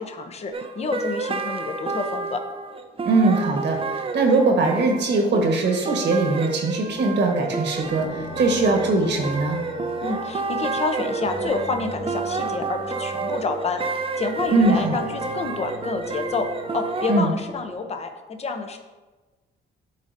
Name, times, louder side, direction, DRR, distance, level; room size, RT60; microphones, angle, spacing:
voice 1, 0.0-2.4 10.0-13.8 14.2-16.5 16.7-18.8, left 4 dB, 30° left, 6 dB, 0.7 m, -28 dB
sound 1, 0.5-17.2, right 4 dB, 30° right, 0.5 m, -30 dB
voice 2, 3.0-9.6 14.5-15.0 17.1-17.3, right 3 dB, 60° right, 2 dB, 1.3 m, -21 dB
sound 2, 7.7-17.7, left 1 dB, 60° left, 1.8 m, -39 dB
10.5 x 4.0 x 2.6 m, 1.2 s
cardioid pair, 90°, 20 cm